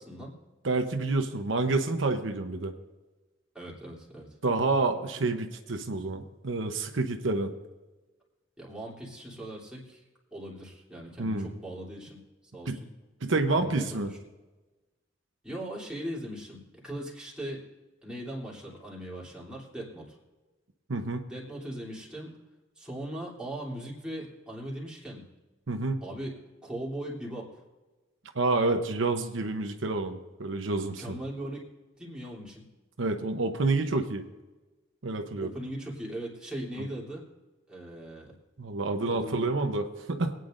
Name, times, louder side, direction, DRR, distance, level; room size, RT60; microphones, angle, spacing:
voice 1, 0.6-2.7 4.4-7.5 11.2-11.5 12.7-12.8 13.2-14.1 20.9-21.2 25.7-26.0 28.3-31.1 33.0-34.2 35.0-35.5 38.6-40.3, right 3 dB, 80° right, 5 dB, 0.9 m, -28 dB
voice 2, 3.5-4.3 8.6-10.0 10.3-12.2 12.5-12.9 13.5-14.2 15.4-17.7 18.0-20.2 21.3-22.3 22.8-25.3 26.0-27.5 30.8-31.6 32.0-32.7 35.4-37.2 37.7-38.3 39.1-39.7, right 1 dB, 5° right, -5 dB, 3.1 m, -39 dB
23.0 x 9.3 x 2.6 m, 1.2 s
head